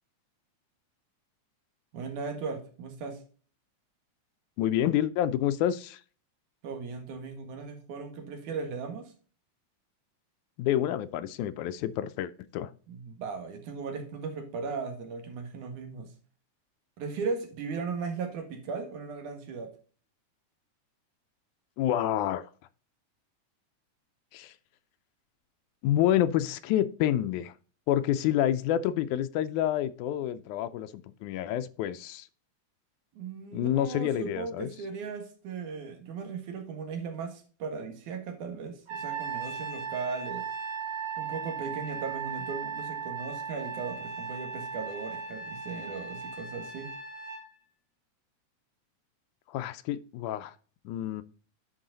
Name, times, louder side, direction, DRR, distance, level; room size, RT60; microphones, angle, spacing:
voice 1, 1.9-3.2 6.6-9.1 12.9-16.1 17.0-19.7 33.2-40.5 41.2-47.0, right 5 dB, 80° right, 5 dB, 3.0 m, -37 dB
voice 2, 4.6-6.0 10.6-12.7 21.8-22.5 24.3-24.5 25.8-27.5 27.9-32.3 33.5-34.7 49.5-50.6 50.9-51.2, left 11 dB, 85° left, 11 dB, 2.0 m, -28 dB
Trumpet, 38.9-47.4, right 6 dB, 45° right, 3.8 m, -37 dB
10.0 x 4.6 x 3.9 m, 0.40 s
omnidirectional pair, 3.4 m